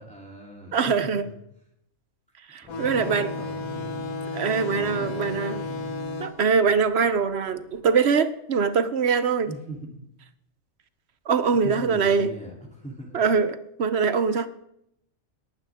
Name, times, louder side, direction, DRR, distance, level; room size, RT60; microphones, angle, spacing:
voice 1, 0.0-1.3 2.6-5.9 9.4-10.1 11.5-13.2, right 1 dB, 5° left, -3 dB, 3.0 m, -41 dB
voice 2, 0.7-1.2 2.5-3.3 4.3-5.6 6.2-9.5 11.3-12.3 13.1-14.5, right 5 dB, 55° right, 12 dB, 0.9 m, -23 dB
sound 1, 2.7-7.8, left 3 dB, 80° left, 1.5 m, -34 dB
18.5 x 11.5 x 3.6 m, 0.77 s
omnidirectional pair, 1.5 m